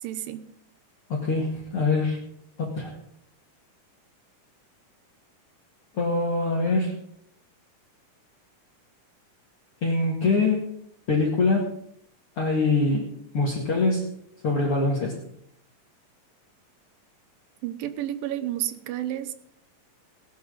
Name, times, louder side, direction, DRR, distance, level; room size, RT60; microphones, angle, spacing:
voice 1, 0.0-0.5 17.6-19.3, right 12 dB, 85° right, 12 dB, 2.6 m, -31 dB
voice 2, 1.1-2.2 2.6-2.9 5.9-7.0 9.8-10.7 11.1-11.8 12.4-14.1 14.4-15.2, left 3 dB, 45° left, -2 dB, 2.5 m, -24 dB
18.0 x 11.5 x 3.9 m, 0.69 s
omnidirectional pair, 4.0 m